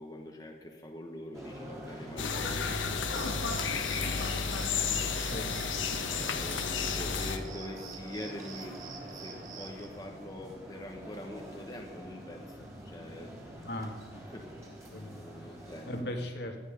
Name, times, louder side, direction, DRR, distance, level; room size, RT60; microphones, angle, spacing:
voice 1, 0.0-4.4 5.3-13.7 14.3-14.4 15.0-15.9, left 1 dB, 20° left, 1 dB, 1.3 m, -45 dB
sound 1, 1.3-16.0, equal, 15° right, 3.3 m, -47 dB
sound 2, 2.2-7.4, left 5 dB, 85° left, 1.4 m, -32 dB
Cricket, 3.1-9.9, right 4 dB, 40° right, 1.8 m, -46 dB
voice 2, 5.1-5.5 13.6-14.2 14.9-15.2 15.9-16.6, left 1 dB, 55° left, 3 dB, 1.9 m, -38 dB
17.5 x 12.5 x 5.2 m, 1.5 s
head